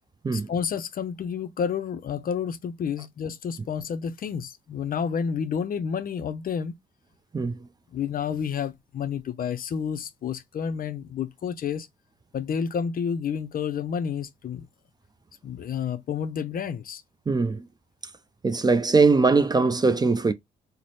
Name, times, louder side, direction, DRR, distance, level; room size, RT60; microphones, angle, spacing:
voice 1, 0.3-6.8 7.9-11.9 12.3-14.7 15.4-17.0, left 7 dB, 45° left, 0.5 m, -30 dB
voice 2, 7.3-7.7 17.3-17.7 18.4-20.3, right 4 dB, 20° right, 0.4 m, -21 dB
3.1 x 2.0 x 4.1 m
cardioid pair, 90°, 20 cm